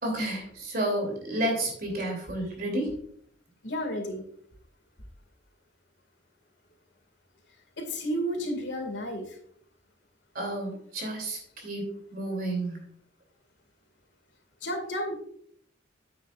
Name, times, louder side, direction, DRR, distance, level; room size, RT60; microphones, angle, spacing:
voice 1, 0.0-3.0 10.3-12.8, right 1 dB, 50° right, 2 dB, 3.0 m, -31 dB
voice 2, 3.6-4.2 7.8-9.4 14.6-15.2, equal, 70° left, 3 dB, 2.2 m, -32 dB
9.3 x 8.6 x 2.5 m, 0.64 s
head